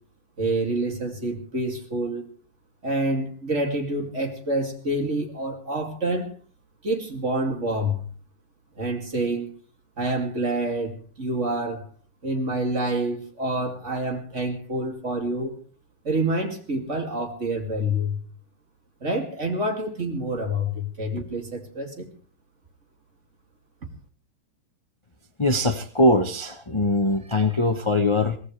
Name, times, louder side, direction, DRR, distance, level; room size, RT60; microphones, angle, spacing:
voice 1, 0.4-2.2 2.8-6.3 6.8-8.1 8.8-9.5 10.0-11.8 12.2-15.5 16.0-18.2 19.0-22.1, right 1 dB, 35° right, 4 dB, 2.9 m, -27 dB
voice 2, 25.4-28.4, left 1 dB, 25° left, 7 dB, 0.7 m, -22 dB
23.0 x 18.0 x 3.3 m, 0.40 s
omnidirectional pair, 2.2 m